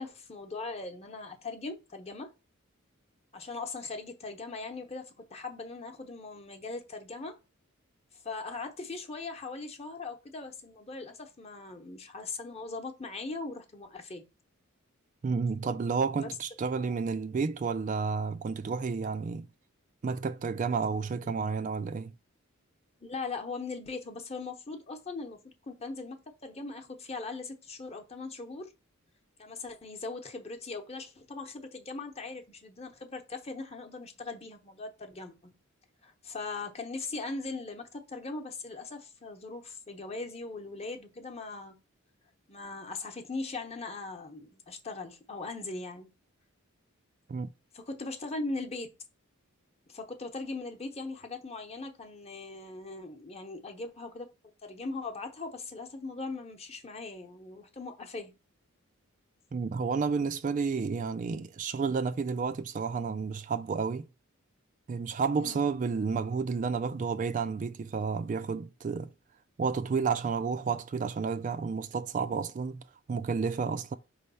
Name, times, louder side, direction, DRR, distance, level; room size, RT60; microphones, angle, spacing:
voice 1, 0.0-2.3 3.3-7.4 8.2-14.2 16.2-16.3 16.8-17.0 21.2-21.7 23.0-25.4 25.7-28.7 29.4-35.5 36.0-41.8 42.5-46.1 47.7-48.9 49.9-54.3 54.6-58.3 65.4-65.7, left 3 dB, 30° left, 0.9 m, -40 dB
voice 2, 15.2-19.5 20.0-22.1 47.3-47.5 59.5-64.1 64.9-69.1 69.6-74.0, right 5 dB, 40° right, 0.3 m, -31 dB
5.3 x 3.3 x 5.5 m
head